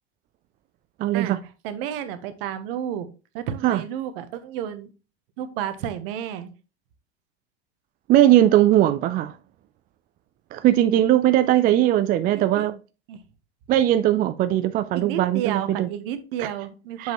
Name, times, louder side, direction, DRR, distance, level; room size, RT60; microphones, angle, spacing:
voice 1, 1.0-1.4 3.6-3.8 8.1-9.3 10.5-12.7 13.7-15.9 16.4-16.5 17.0-17.1, right 13 dB, 30° right, 0.4 m, -19 dB
voice 2, 1.6-3.1 3.3-4.9 5.4-6.5 12.4-12.7 13.1-13.2 14.9-17.1, right 10 dB, 60° right, 1.0 m, -31 dB
6.7 x 5.1 x 3.0 m
hypercardioid pair, 90°, 33 cm